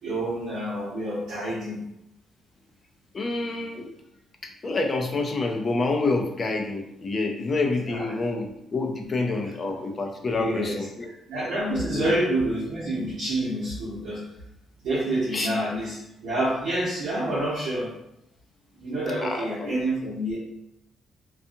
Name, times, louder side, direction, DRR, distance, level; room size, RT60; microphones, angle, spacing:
voice 1, 0.0-1.8 7.8-8.2 10.3-10.8 11.3-14.2 14.8-18.0 18.8-20.4, right 1 dB, 70° right, -9 dB, 0.9 m, -28 dB
voice 2, 3.1-3.9 4.4-11.1 11.9-12.1 15.3-15.5 19.2-19.8, left 3 dB, 25° left, 3 dB, 0.3 m, -28 dB
2.6 x 2.3 x 2.6 m, 0.81 s
cardioid pair, 175°, 0 cm